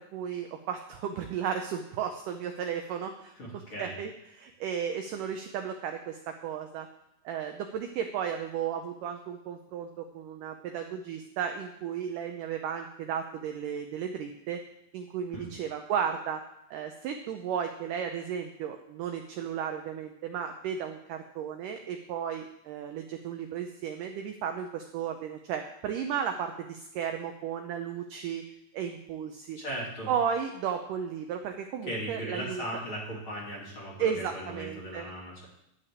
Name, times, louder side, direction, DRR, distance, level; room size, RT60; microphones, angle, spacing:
voice 1, 0.0-4.1 4.4-6.9 7.3-14.6 14.9-16.4 16.7-28.5 28.7-29.6 30.1-32.6 34.0-35.1, right 8 dB, 85° right, 5 dB, 1.9 m, -34 dB
voice 2, 3.4-3.9 15.3-15.5 29.5-30.1 31.8-35.5, equal, 35° left, -5 dB, 3.3 m, -38 dB
11.5 x 5.7 x 8.4 m, 0.80 s
omnidirectional pair, 4.7 m